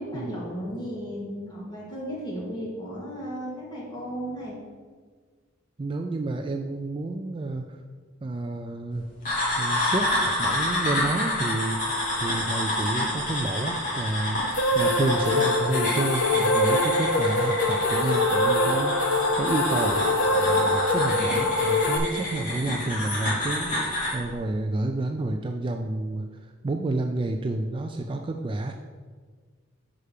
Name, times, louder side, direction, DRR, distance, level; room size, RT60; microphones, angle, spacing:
voice 1, 0.0-4.6, equal, 25° left, -6 dB, 2.3 m, -34 dB
voice 2, 5.8-7.8 8.2-9.0 9.6-26.3 26.6-28.7, right 2 dB, 25° right, 4 dB, 0.3 m, -30 dB
sound 1, 9.3-24.2, left 1 dB, 40° left, 2.4 m, -29 dB
sound 2, 14.5-22.0, left 1 dB, 70° left, 0.8 m, -23 dB
5.6 x 5.0 x 6.6 m, 1.5 s
head